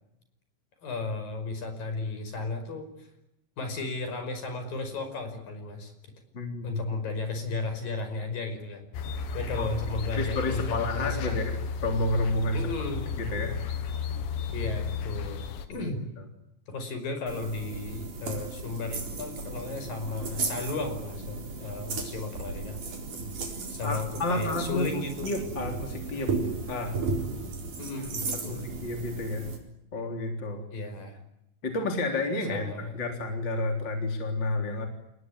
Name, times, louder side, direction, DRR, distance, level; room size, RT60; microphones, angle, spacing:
voice 1, 0.8-3.1 3.6-6.1 6.6-8.9 9.3-11.4 12.5-13.2 14.5-16.0 16.7-22.8 23.7-25.3 26.2-26.5 27.8-28.7 30.7-31.2 32.5-33.1, left 3 dB, 50° left, 7 dB, 6.9 m, -34 dB
voice 2, 6.3-6.8 9.6-9.7 10.2-11.6 11.8-12.9 13.1-13.6 15.8-15.9 23.8-24.9 25.2-26.3 26.7-27.0 28.3-29.5 29.9-30.6 31.6-32.7 32.9-34.9, left 2 dB, 25° left, 4 dB, 3.7 m, -30 dB
sound 1, 8.9-15.7, left 5 dB, 85° left, 4.1 m, -33 dB
sound 2, 17.3-29.6, right 4 dB, 45° right, 5.5 m, -35 dB
29.0 x 20.0 x 9.9 m, 0.85 s
omnidirectional pair, 5.2 m